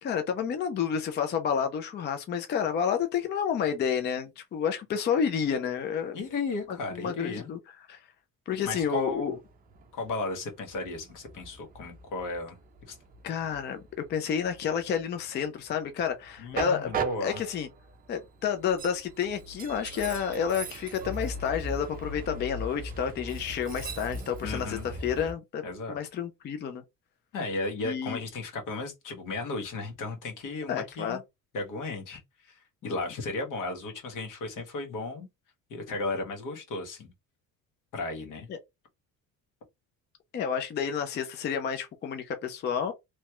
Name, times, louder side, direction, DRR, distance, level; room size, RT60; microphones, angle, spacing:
voice 1, 0.0-6.2 6.7-7.6 7.9-8.0 8.5-9.3 13.2-13.8 14.1-16.9 17.2-17.7 18.1-26.8 27.8-28.2 30.7-31.2 32.8-32.9 38.5-38.6 40.3-42.9, left 7 dB, 35° left, 0.4 m, -30 dB
voice 2, 6.1-7.5 8.6-9.4 9.9-12.6 12.9-13.0 16.4-17.4 24.4-24.9 25.6-26.0 27.3-31.2 31.5-35.3 35.7-37.1 37.9-38.5, left 3 dB, 70° left, 1.2 m, -35 dB
Train, 8.5-25.3, right 3 dB, 30° right, 0.5 m, -39 dB
3.1 x 2.3 x 2.9 m
cardioid pair, 155°, 32 cm